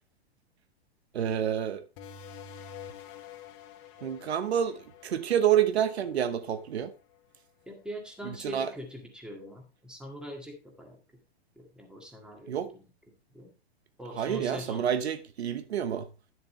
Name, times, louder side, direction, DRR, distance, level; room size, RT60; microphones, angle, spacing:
voice 1, 1.1-1.8 4.0-6.9 8.4-8.7 12.5-12.7 14.2-16.1, right 9 dB, 90° right, 1.0 m, -28 dB
sound 1, 2.0-7.2, left 7 dB, 40° left, 1.4 m, -48 dB
voice 2, 7.7-11.0 11.6-12.8 13.3-13.5 14.0-14.9, equal, 5° right, 1.9 m, -42 dB
10.5 x 6.9 x 3.2 m
hypercardioid pair, 135°, 31 cm